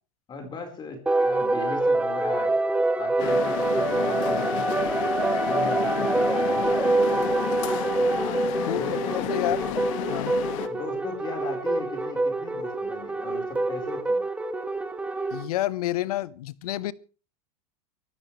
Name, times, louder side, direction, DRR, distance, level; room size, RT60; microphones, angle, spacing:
voice 1, 0.3-2.6 3.0-4.9 5.4-6.9 8.1-8.5 8.8-9.7 10.7-14.2, left 3 dB, 25° left, 4.5 m, -38 dB
sound 1, 1.1-15.4, right 2 dB, 5° right, 1.7 m, -26 dB
sound 2, 3.2-10.7, left 13 dB, 60° left, 1.9 m, -31 dB
voice 2, 8.7-9.0 9.3-9.6 10.1-10.5 15.3-16.9, left 15 dB, 85° left, 1.1 m, -29 dB
24.0 x 14.0 x 3.3 m
supercardioid pair, 145°, 19 cm